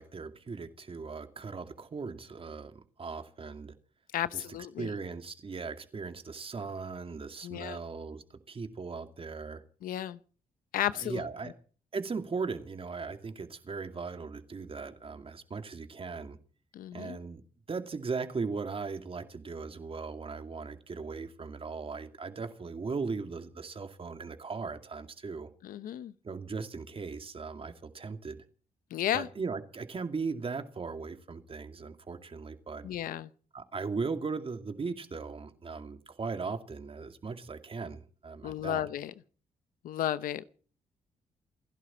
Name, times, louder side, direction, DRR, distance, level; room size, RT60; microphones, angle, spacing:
voice 1, 0.0-3.7 4.3-9.6 10.9-11.5 11.9-16.4 16.9-25.5 26.2-28.4 29.1-32.9 33.5-38.8, right 4 dB, 40° right, 2.4 m, -38 dB
voice 2, 4.1-4.9 7.4-7.8 9.8-10.2 10.7-11.3 16.7-17.2 25.6-26.1 28.9-29.3 32.8-33.3 38.4-39.1 39.8-40.5, left 12 dB, 85° left, 0.8 m, -33 dB
28.0 x 11.5 x 4.4 m
cardioid pair, 75°, 14 cm